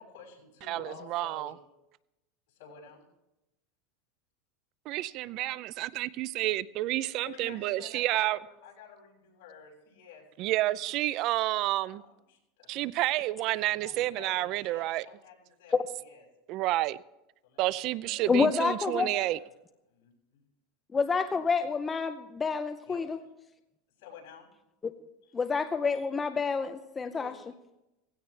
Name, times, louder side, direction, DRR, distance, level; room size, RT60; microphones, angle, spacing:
voice 1, 0.0-1.5 2.5-3.1 7.2-10.3 11.9-12.9 13.6-16.2 17.4-17.7 18.0-18.7 19.1-19.5 19.9-20.1 22.8-23.0 24.0-24.5 25.2-25.3 27.1-27.3, left 6 dB, 70° left, 6.8 m, -50 dB
voice 2, 0.7-1.5 4.9-8.4 10.4-12.0 12.7-15.0 16.5-17.0 17.6-19.4, right 16 dB, 50° right, 0.5 m, -30 dB
voice 3, 18.3-19.2 20.9-23.2 24.8-24.9 25.3-27.3, left 5 dB, 20° left, 0.6 m, -28 dB
18.0 x 16.5 x 3.4 m
supercardioid pair, 135°, 0 cm